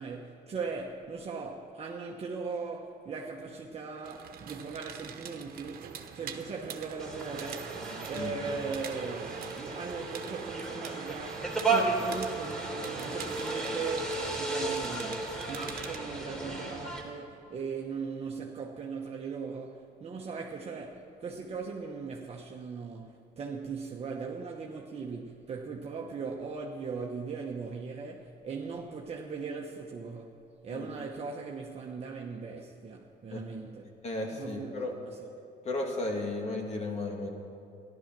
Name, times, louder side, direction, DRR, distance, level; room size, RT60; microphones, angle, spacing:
voice 1, 0.0-7.8 8.1-33.8 34.4-35.3, right 5 dB, 35° right, 1.1 m, -39 dB
sound 1, 4.0-16.0, right 7 dB, 60° right, 1.2 m, -43 dB
sound 2, 7.0-17.0, right 3 dB, 5° left, 3.2 m, -34 dB
voice 2, 34.0-34.9 35.6-37.3, left 2 dB, 40° left, 2.5 m, -34 dB
14.5 x 12.0 x 6.1 m
cardioid pair, 110°, 17 cm